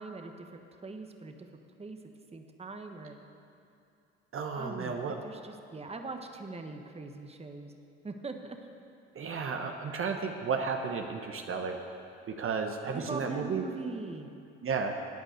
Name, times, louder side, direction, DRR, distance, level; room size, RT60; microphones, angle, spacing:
voice 1, 0.0-1.5 1.8-2.0 2.3-3.2 4.5-7.7 8.0-8.6 12.9-14.3, right 3 dB, 20° right, 5 dB, 1.2 m, -41 dB
voice 2, 4.3-5.2 9.1-11.8 12.3-13.6 14.6-14.9, right 5 dB, 45° right, 4 dB, 1.1 m, -33 dB
12.0 x 8.8 x 7.9 m, 2.6 s
hypercardioid pair, 65°, 31 cm